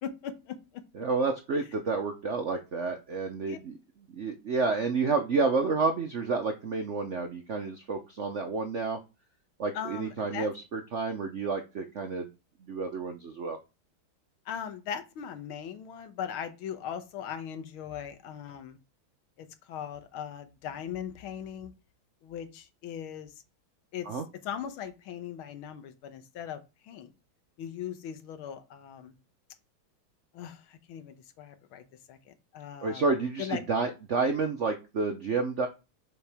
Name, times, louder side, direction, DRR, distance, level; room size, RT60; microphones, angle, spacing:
voice 1, 0.0-0.6 3.5-3.6 9.7-10.5 14.5-18.8 19.4-21.7 22.2-23.3 23.9-26.6 26.9-27.1 27.6-29.1 30.3-33.1 33.4-33.6, left 8 dB, 85° left, 10 dB, 1.7 m, -39 dB
voice 2, 0.9-3.8 4.1-9.0 9.6-12.3 12.7-13.6 24.1-24.3 32.8-35.7, right 4 dB, 70° right, 5 dB, 0.6 m, -30 dB
7.2 x 4.8 x 3.5 m, 0.28 s
omnidirectional pair, 2.3 m